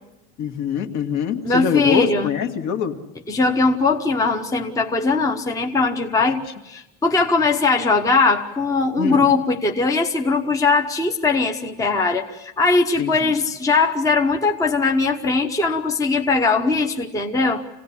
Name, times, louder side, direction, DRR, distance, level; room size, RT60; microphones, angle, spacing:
voice 1, 0.4-3.0 6.2-6.3 9.0-9.3 13.0-13.4, left 7 dB, 55° left, 5 dB, 2.2 m, -24 dB
voice 2, 1.4-2.3 3.3-17.6, left 3 dB, 10° left, 4 dB, 0.9 m, -20 dB
27.0 x 17.5 x 10.0 m, 0.97 s
cardioid pair, 170°, 35 cm